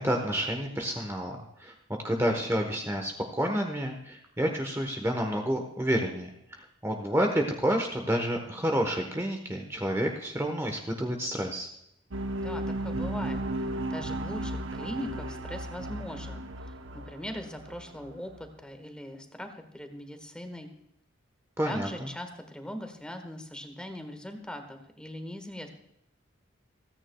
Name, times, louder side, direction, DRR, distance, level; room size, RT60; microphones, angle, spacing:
voice 1, 0.0-1.7 2.0-6.3 6.8-11.7 21.6-22.1, equal, 15° right, 3 dB, 1.1 m, -29 dB
sound 1, 12.1-18.4, right 1 dB, 75° right, 0.9 m, -35 dB
voice 2, 12.4-20.7 21.6-25.7, equal, 5° left, 5 dB, 1.4 m, -40 dB
28.5 x 9.9 x 2.3 m, 0.79 s
head